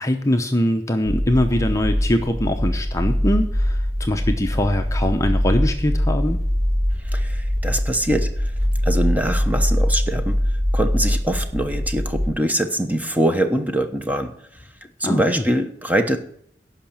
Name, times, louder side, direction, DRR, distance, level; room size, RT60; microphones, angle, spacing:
voice 1, 0.0-6.4 15.0-15.4, left 1 dB, 15° left, 5 dB, 0.8 m, -22 dB
sound 1, 1.0-12.3, equal, 60° right, 4.3 m, -22 dB
voice 2, 7.0-8.5 8.8-10.4 10.7-14.3 15.0-16.2, right 1 dB, 10° right, 6 dB, 1.0 m, -23 dB
11.5 x 5.8 x 8.7 m, 0.63 s
head